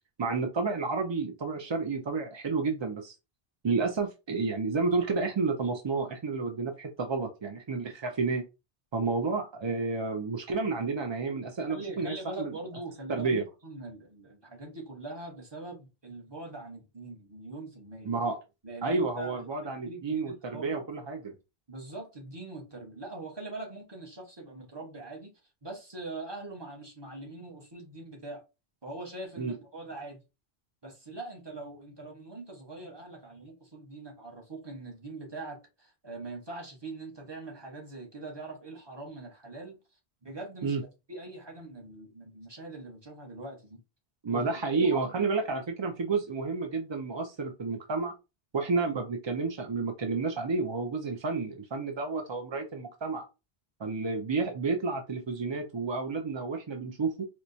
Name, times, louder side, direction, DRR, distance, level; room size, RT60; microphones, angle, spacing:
voice 1, 0.2-3.1 3.6-8.4 8.9-12.5 13.1-13.4 18.1-18.4 18.8-21.3 29.4-29.5 40.6-40.8 44.2-48.1 48.5-53.3 53.8-57.3, right 4 dB, 45° right, 0.3 m, -30 dB
voice 2, 11.7-13.4 13.6-18.1 18.6-20.8 21.7-25.3 25.6-28.4 28.8-30.2 30.8-39.8 40.2-40.8 41.1-43.8 44.3-45.3, right 2 dB, 25° right, 1.0 m, -42 dB
4.4 x 2.2 x 2.6 m
omnidirectional pair, 1.0 m